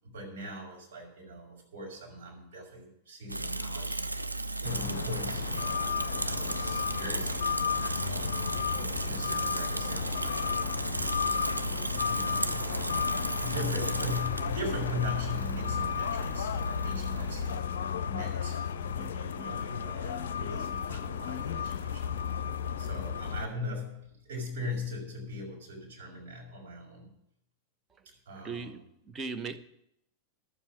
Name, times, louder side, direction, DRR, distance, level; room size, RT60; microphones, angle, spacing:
voice 1, 0.0-4.1 4.6-8.4 8.7-11.0 12.1-13.0 13.4-17.4 18.0-22.2 22.8-27.1 28.2-28.7, left 1 dB, 60° right, -3 dB, 5.1 m, -40 dB
Bicycle / Mechanisms, 3.3-17.6, right 2 dB, 85° right, 0.5 m, -35 dB
sound 1, 4.6-23.5, left 7 dB, 60° left, 0.5 m, -33 dB
voice 2, 28.4-29.6, right 4 dB, 20° right, 9 dB, 0.8 m, -38 dB
12.0 x 7.3 x 7.5 m, 0.74 s
figure-of-eight pair, 90°, 0 cm